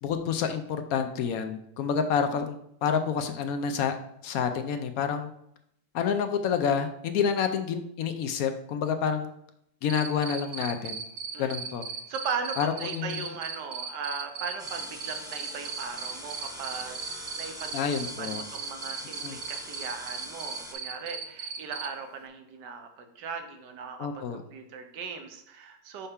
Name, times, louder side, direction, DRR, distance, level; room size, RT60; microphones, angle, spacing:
voice 1, 0.0-4.0 4.2-5.3 5.9-9.3 9.8-11.0 11.4-11.9 12.6-13.3 17.7-18.4 19.2-19.4 24.0-24.4, left 7 dB, 70° left, 7 dB, 0.9 m, -28 dB
Cricket, 9.9-21.9, right 6 dB, 55° right, 0.7 m, -36 dB
voice 2, 12.1-17.7 18.2-26.1, right 5 dB, 75° right, 6 dB, 1.4 m, -38 dB
sound 1, 14.6-20.7, equal, 5° right, 0.8 m, -43 dB
5.5 x 5.5 x 3.6 m, 0.75 s
omnidirectional pair, 1.9 m